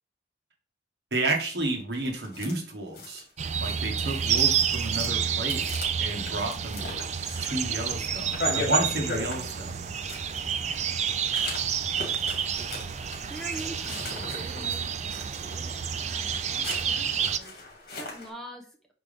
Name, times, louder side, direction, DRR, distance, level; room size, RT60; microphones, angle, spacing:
voice 1, 1.1-3.2 3.6-6.8 7.4-9.7, right 2 dB, 65° right, 1 dB, 1.6 m, -31 dB
sound 1, 2.0-2.6 2.9-10.6 11.1-18.3, left 2 dB, 60° left, 2.3 m, -38 dB
sound 2, 3.4-17.4, right 7 dB, 40° right, 0.3 m, -29 dB
voice 2, 6.4-6.9 13.3-18.8, right 1 dB, 5° left, 1 dB, 1.1 m, -45 dB
5.9 x 5.1 x 3.5 m, 0.40 s
head